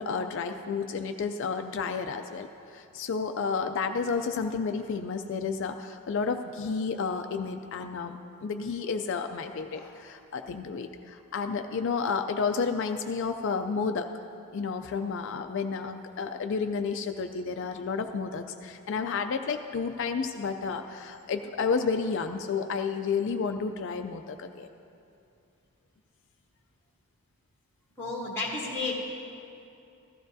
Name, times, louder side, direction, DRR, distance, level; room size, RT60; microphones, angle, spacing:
voice 1, 0.0-14.1 14.5-24.7, left 5 dB, 55° left, 6 dB, 0.4 m, -31 dB
voice 2, 28.0-28.9, left 3 dB, 10° left, -3 dB, 1.1 m, -32 dB
15.5 x 13.0 x 2.7 m, 2.6 s
head